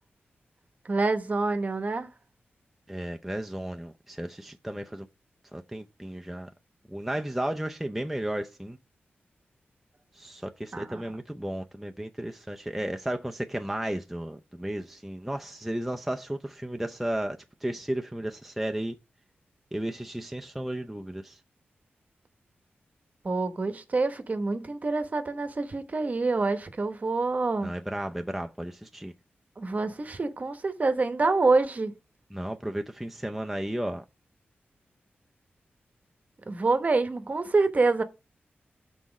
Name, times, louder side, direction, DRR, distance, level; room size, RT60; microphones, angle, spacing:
voice 1, 0.8-2.1 10.7-11.0 23.2-27.7 29.6-31.9 36.5-38.0, right 3 dB, 40° right, 0.9 m, -26 dB
voice 2, 2.9-5.1 5.5-6.5 6.9-8.8 10.2-18.9 19.7-21.4 27.6-29.1 32.3-34.0, right 1 dB, 5° right, 0.5 m, -34 dB
6.0 x 4.2 x 6.1 m
wide cardioid pair, 90°, 4 cm